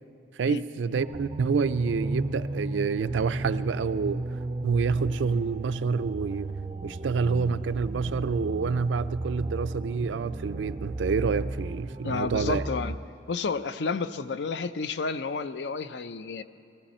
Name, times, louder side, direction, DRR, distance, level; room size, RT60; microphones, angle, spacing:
voice 1, 0.4-4.2 4.6-6.5 6.8-12.6, right 5 dB, 90° right, 0.4 m, -27 dB
sound 1, 0.9-13.0, right 2 dB, 25° right, 0.3 m, -35 dB
voice 2, 12.0-13.0 13.3-16.4, left 4 dB, 75° left, 0.5 m, -31 dB
19.0 x 15.5 x 4.3 m
head